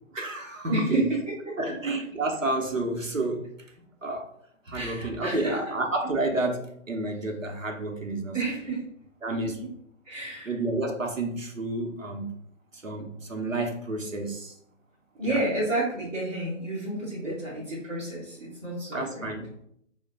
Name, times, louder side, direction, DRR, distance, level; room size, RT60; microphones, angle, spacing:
voice 1, 0.1-1.0 1.6-3.5 4.0-4.3 4.7-8.4 9.2-9.6 10.5-12.3 12.7-14.5 15.2-15.4 17.2-17.3 18.9-19.5, right 2 dB, 85° right, 3 dB, 0.8 m, -30 dB
voice 2, 0.7-1.2 4.7-5.6 8.3-8.8 10.0-10.5 15.1-19.3, right 2 dB, 15° right, -12 dB, 0.5 m, -30 dB
3.1 x 2.1 x 3.9 m, 0.69 s
figure-of-eight pair, 135°, 38 cm